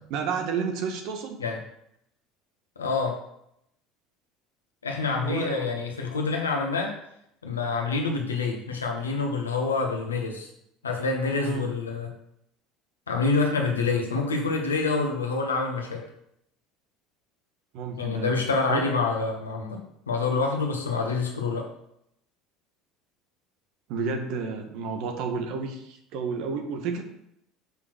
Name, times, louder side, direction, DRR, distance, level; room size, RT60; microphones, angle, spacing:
voice 1, 0.1-1.4 5.2-5.7 11.4-11.7 17.7-18.4 18.7-18.8 23.9-27.0, right 5 dB, 60° right, 4 dB, 1.7 m, -31 dB
voice 2, 2.7-3.1 4.8-6.9 7.4-10.5 10.8-12.1 13.1-16.0 18.0-19.8 20.1-21.7, left 4 dB, 90° left, 1 dB, 1.7 m, -27 dB
6.9 x 5.9 x 6.4 m, 0.77 s
hypercardioid pair, 70°, 0 cm